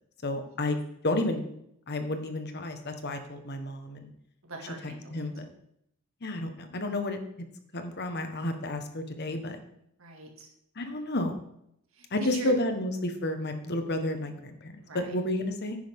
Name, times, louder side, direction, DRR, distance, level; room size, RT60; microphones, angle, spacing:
voice 1, 0.2-0.8 1.0-1.4 1.9-4.1 5.1-5.4 6.2-7.2 7.7-9.6 10.8-11.4 12.1-15.8, left 1 dB, 50° left, 6 dB, 1.3 m, -31 dB
voice 2, 4.4-5.3 10.0-10.5 11.9-12.6 14.8-15.2, right 2 dB, 70° right, 2 dB, 2.2 m, -42 dB
10.5 x 9.9 x 3.7 m, 0.74 s
head